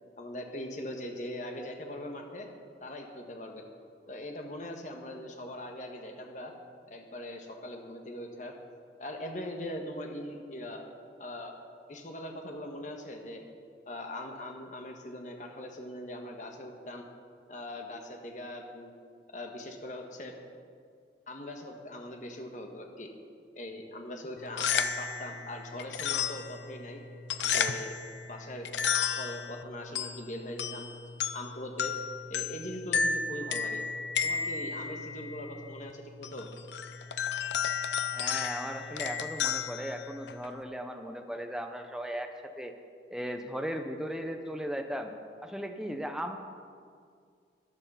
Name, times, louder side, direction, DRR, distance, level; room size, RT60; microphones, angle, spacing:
voice 1, 0.2-2.5 2.8-3.6 4.1-6.5 6.9-8.6 9.0-10.8 11.2-11.5 11.9-13.4 13.9-17.1 17.5-18.9 19.3-20.3 21.3-23.1 23.5-27.0 27.4-28.0 28.3-28.7 29.2-30.9 31.3-31.9 32.3-33.8 34.2-36.5, left 1 dB, 45° left, 3 dB, 1.5 m, -41 dB
sound 1, 24.4-40.6, left 6 dB, 85° left, 0.6 m, -33 dB
voice 2, 38.1-42.3 42.6-42.7 43.1-45.1 45.4-46.4, equal, 5° right, 5 dB, 0.7 m, -37 dB
14.0 x 10.5 x 5.7 m, 2.2 s
head